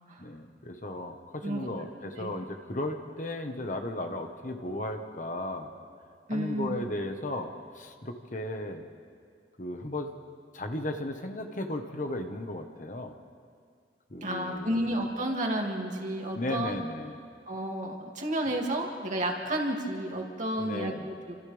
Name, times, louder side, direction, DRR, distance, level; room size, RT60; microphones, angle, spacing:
voice 1, 0.2-5.7 6.3-8.9 9.6-10.1 10.5-13.2 14.1-14.8 16.4-17.2 20.6-21.1, left 1 dB, 45° left, 5 dB, 1.4 m, -35 dB
voice 2, 6.3-6.8 14.2-16.7 17.5-21.4, right 1 dB, 45° right, 0 dB, 2.6 m, -31 dB
28.5 x 26.5 x 3.5 m, 2.3 s
head